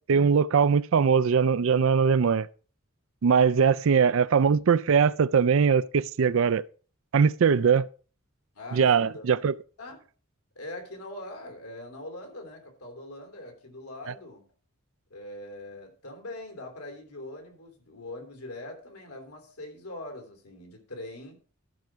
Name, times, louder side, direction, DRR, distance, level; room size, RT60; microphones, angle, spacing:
voice 1, 0.1-2.5 3.2-6.6 7.1-7.9 8.7-9.5, right 6 dB, 60° right, 0.4 m, -21 dB
voice 2, 8.5-9.2 9.8-10.0 10.5-14.4 15.1-21.4, left 1 dB, 85° left, 3.2 m, -42 dB
13.0 x 6.1 x 4.5 m
head